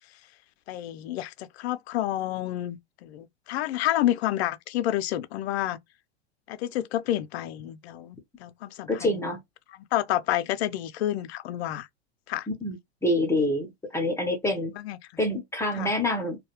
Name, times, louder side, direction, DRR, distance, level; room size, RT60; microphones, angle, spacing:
voice 1, 0.7-5.8 6.5-9.4 9.9-11.9 12.3-12.5 14.8-15.0 15.7-15.9, left 13 dB, 65° left, 0.5 m, -29 dB
voice 2, 8.9-9.4 12.5-13.7 13.9-14.7 15.2-16.4, left 1 dB, 10° left, 0.6 m, -26 dB
2.3 x 2.1 x 2.8 m
hypercardioid pair, 110°, 34 cm